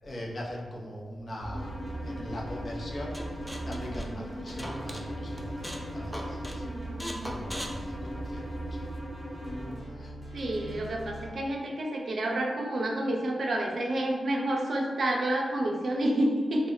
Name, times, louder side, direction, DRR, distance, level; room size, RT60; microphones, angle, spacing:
voice 1, 0.0-3.1 3.6-5.5 5.9-6.6 7.2-8.8 10.0-10.2 10.5-10.9, equal, 50° left, -3 dB, 0.6 m, -41 dB
sound 1, 1.4-11.3, right 2 dB, 25° right, 0.7 m, -42 dB
sound 2, 1.5-9.7, equal, 25° left, 1.0 m, -39 dB
sound 3, 3.1-5.0 5.4-5.9 6.1-6.6 7.0-8.6, equal, ahead, 0.4 m, -39 dB
voice 2, 10.3-16.7, right 1 dB, 65° right, 0 dB, 0.4 m, -29 dB
2.1 x 2.0 x 3.6 m, 1.5 s
cardioid pair, 55°, 0 cm